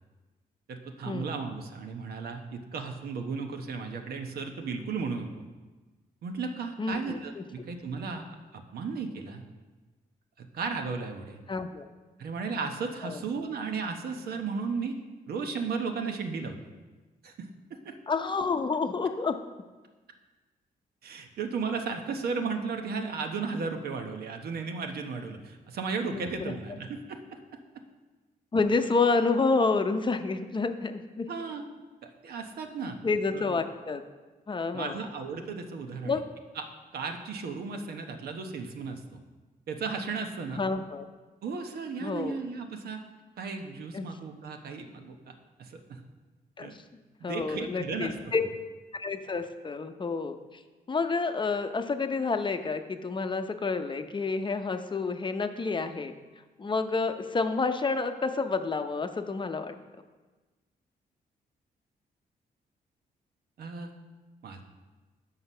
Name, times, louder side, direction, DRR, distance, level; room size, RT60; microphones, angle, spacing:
voice 1, 0.7-5.3 6.2-9.4 10.4-11.4 12.2-15.0 15.3-16.6 17.2-17.9 21.0-27.4 27.7-27.8 31.3-31.6 32.0-33.0 33.3-33.6 34.7-36.2 36.5-36.7 36.9-39.0 39.7-40.6 41.4-43.0 43.4-46.0 46.6-46.7 47.2-48.1 63.6-63.9 64.4-64.6, right 4 dB, 80° right, 5 dB, 1.0 m, -35 dB
voice 2, 6.8-7.4 11.5-11.8 13.0-13.2 18.1-19.4 26.1-26.5 28.5-31.3 33.0-34.0 34.5-35.0 36.0-36.2 40.6-41.1 42.0-42.4 43.9-44.1 46.6-46.7 47.2-48.4 48.9-50.6 50.9-56.1 56.6-59.7, left 4 dB, 30° left, 7 dB, 0.7 m, -29 dB
7.9 x 5.8 x 5.5 m, 1.3 s
cardioid pair, 95°, 16 cm